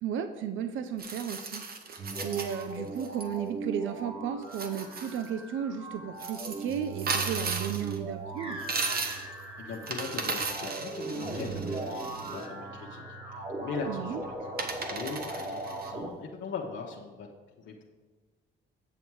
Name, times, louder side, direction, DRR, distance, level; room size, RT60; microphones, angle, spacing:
voice 1, 0.0-8.6 13.9-14.2, right 8 dB, 80° right, 9 dB, 0.6 m, -34 dB
sound 1, 1.0-3.2 4.4-5.3 6.2-8.0 8.6-9.3 9.7-12.5 13.9-14.0 14.6-15.9, right 4 dB, 50° right, 1.3 m, -36 dB
sound 2, 2.0-16.1, right 3 dB, 25° right, 1.9 m, -39 dB
voice 2, 9.2-17.3 17.6-17.8, left 4 dB, 70° left, -1 dB, 1.0 m, -40 dB
8.3 x 7.1 x 4.7 m, 1.4 s
cardioid pair, 90°, 20 cm